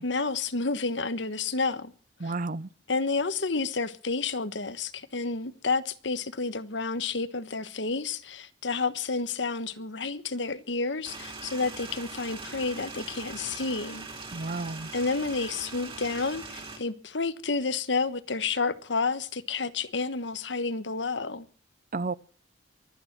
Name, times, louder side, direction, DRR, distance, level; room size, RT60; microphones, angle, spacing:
voice 1, 0.0-1.9 2.2-2.3 2.9-14.1 14.9-21.5, left 4 dB, 70° left, 1.3 m, -30 dB
voice 2, 2.2-2.7 14.3-14.9 21.9-22.1, right 3 dB, 45° right, 0.7 m, -31 dB
sound 1, 11.0-16.8, right 3 dB, 30° right, 3.9 m, -41 dB
23.5 x 9.1 x 6.1 m
head